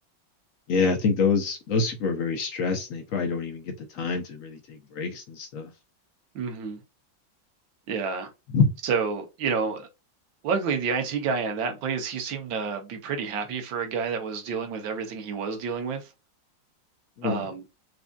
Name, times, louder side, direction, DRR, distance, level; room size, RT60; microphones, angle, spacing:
voice 1, 0.7-5.7 8.5-8.7 17.2-17.5, left 4 dB, 65° left, 0.8 m, -26 dB
voice 2, 6.4-6.8 7.9-8.3 8.8-9.9 10.4-16.1 17.2-17.6, right 5 dB, 80° right, 1.7 m, -29 dB
4.7 x 2.6 x 2.3 m
omnidirectional pair, 2.1 m